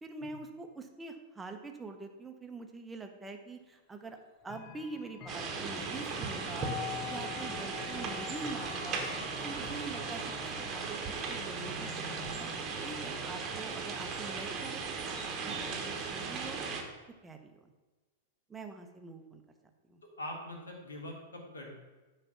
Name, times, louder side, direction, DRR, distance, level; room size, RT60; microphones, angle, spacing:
voice 1, 0.0-4.2 4.4-9.0 9.4-11.0 11.3-12.5 12.8-16.6 17.2-17.7 18.5-19.4 19.9-20.0, right 3 dB, 10° right, 5 dB, 0.8 m, -45 dB
Chime / Clock, 4.4-15.3, left 7 dB, 30° left, 0.9 m, -47 dB
sound 1, 5.3-16.8, right 4 dB, 30° right, 1.1 m, -37 dB
voice 2, 20.2-21.7, left 1 dB, 70° left, 1 dB, 1.6 m, -42 dB
9.0 x 3.3 x 5.8 m, 1.2 s
figure-of-eight pair, 95°, 0 cm